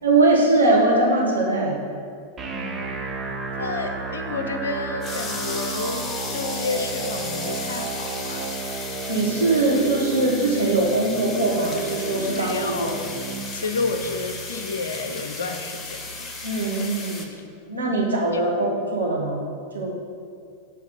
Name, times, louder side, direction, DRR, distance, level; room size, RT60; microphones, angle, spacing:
voice 1, 0.0-1.8 9.1-12.9 16.4-17.3 17.7-19.4 19.7-19.9, right 2 dB, 80° right, -3 dB, 1.4 m, -21 dB
sound 1, 2.4-16.3, right 4 dB, 20° right, 0.9 m, -33 dB
voice 2, 2.5-3.0 3.6-8.6 12.3-13.0 13.5-16.3 17.8-18.4, left 3 dB, 70° left, 6 dB, 0.6 m, -31 dB
sound 2, 5.0-17.3, left 3 dB, 25° left, 0.9 m, -35 dB
8.2 x 4.2 x 5.8 m, 2.3 s
figure-of-eight pair, 90°, 0 cm